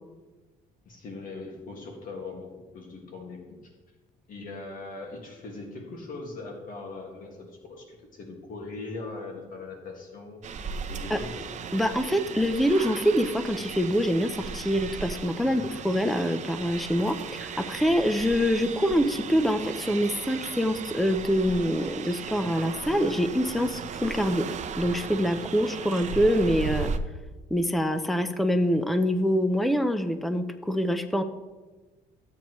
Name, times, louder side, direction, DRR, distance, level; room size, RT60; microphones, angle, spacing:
voice 1, 0.9-3.6 4.3-11.3 15.4-15.7, left 3 dB, 55° left, 1 dB, 1.9 m, -40 dB
sound 1, 10.4-27.0, right 6 dB, 45° right, 0.7 m, -36 dB
voice 2, 11.7-24.5 24.8-26.9 27.5-31.2, equal, ahead, 9 dB, 0.6 m, -25 dB
15.0 x 8.7 x 3.1 m, 1.2 s
cardioid pair, 110°, 17 cm